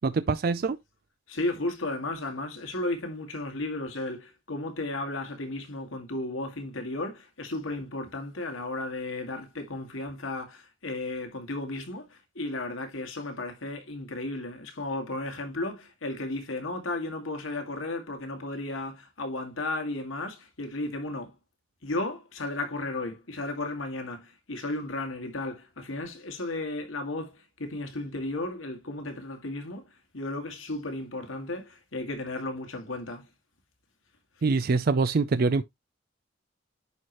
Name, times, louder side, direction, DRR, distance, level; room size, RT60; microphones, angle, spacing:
voice 1, 0.0-0.8 34.4-35.6, right 4 dB, 50° right, 0.4 m, -24 dB
voice 2, 1.3-21.3 21.8-29.8 30.1-33.3, left 2 dB, 85° left, 2.0 m, -34 dB
10.5 x 4.7 x 3.0 m
head